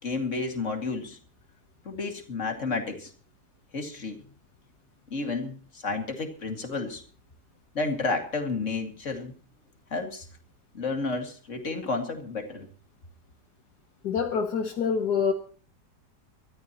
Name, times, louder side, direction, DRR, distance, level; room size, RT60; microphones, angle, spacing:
voice 1, 0.0-1.2 1.8-3.1 3.7-4.2 5.1-7.0 7.7-9.3 9.9-10.3 10.7-12.7, left 3 dB, 45° left, 2.6 m, -31 dB
voice 2, 14.0-15.3, left 6 dB, 75° left, 1.7 m, -26 dB
24.0 x 13.5 x 3.0 m
omnidirectional pair, 1.8 m